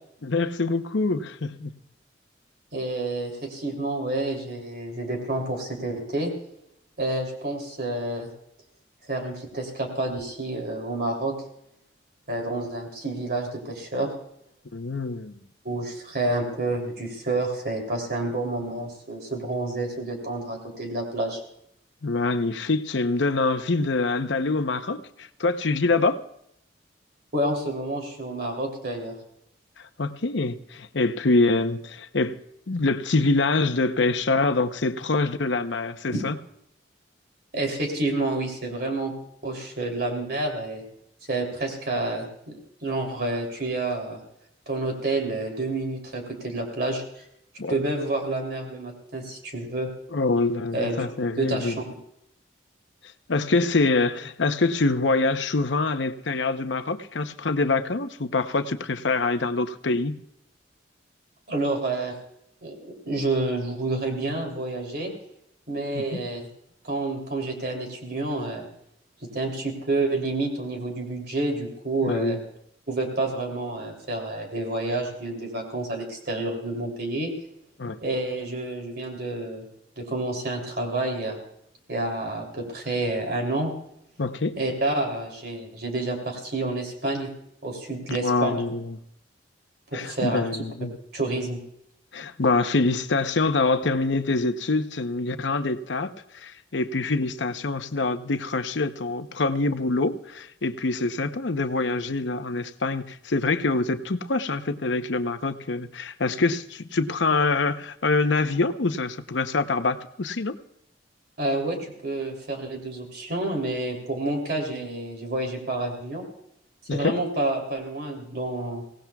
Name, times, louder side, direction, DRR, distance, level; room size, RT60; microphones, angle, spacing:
voice 1, 0.2-1.7 14.7-15.4 22.0-26.2 30.0-36.4 47.6-47.8 50.1-51.8 53.3-60.2 65.9-66.2 72.0-72.4 77.8-78.0 84.2-84.6 88.1-89.0 89.9-90.9 92.1-110.6 116.9-117.2, left 3 dB, 75° left, 10 dB, 0.8 m, -25 dB
voice 2, 2.7-6.3 7.0-8.3 9.1-11.3 12.3-14.1 15.6-21.4 27.3-29.1 36.1-36.2 37.5-39.1 39.4-40.8 41.3-42.5 42.8-44.2 44.7-47.2 47.7-49.9 50.7-51.7 61.5-62.1 62.6-65.1 65.7-66.5 66.8-68.6 69.2-72.4 72.9-77.3 78.0-79.6 80.0-81.4 81.9-83.7 84.6-87.3 87.6-88.6 89.9-90.7 91.1-91.6 111.4-116.2 116.9-118.8, right 2 dB, 55° right, 1 dB, 3.1 m, -29 dB
24.0 x 17.5 x 2.3 m, 0.76 s
head